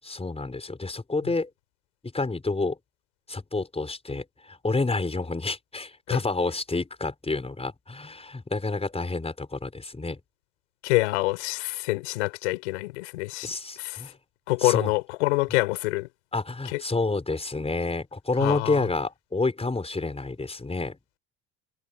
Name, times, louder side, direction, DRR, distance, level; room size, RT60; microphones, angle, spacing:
voice 1, 0.0-1.5 2.1-2.8 3.3-10.2 13.4-14.1 14.6-14.9 16.3-21.0, left 3 dB, 20° left, 5.1 m, -29 dB
voice 2, 10.8-13.5 13.8-14.0 14.5-16.1 16.7-16.8 18.4-18.8, left 22 dB, 90° left, 5.9 m, -26 dB
hypercardioid pair, 70°, 33 cm